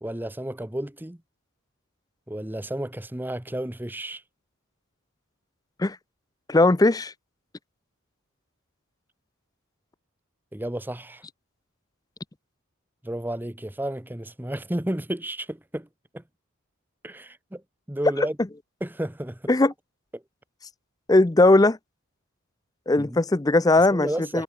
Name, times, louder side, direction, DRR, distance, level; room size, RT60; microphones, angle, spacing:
voice 1, 0.0-1.2 2.3-4.2 10.5-11.2 13.0-15.9 16.1-16.2 17.0-17.6 17.9-18.4 18.8-19.5 20.1-20.2 23.0-23.2 23.9-24.4, right 1 dB, 10° right, 0.8 m, -32 dB
voice 2, 6.5-7.1 19.5-19.7 21.1-21.8 22.9-24.1 24.3-24.4, left 2 dB, 15° left, 0.5 m, -18 dB
head